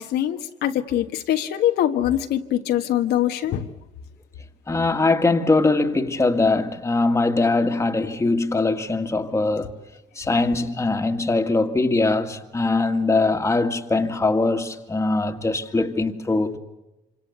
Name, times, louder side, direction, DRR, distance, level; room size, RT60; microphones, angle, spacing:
voice 1, 0.0-3.7, left 11 dB, 75° left, 1.5 m, -23 dB
voice 2, 4.7-9.7 10.2-16.6, left 3 dB, 15° left, 2.0 m, -21 dB
27.0 x 26.0 x 8.2 m
cardioid pair, 110°, 17 cm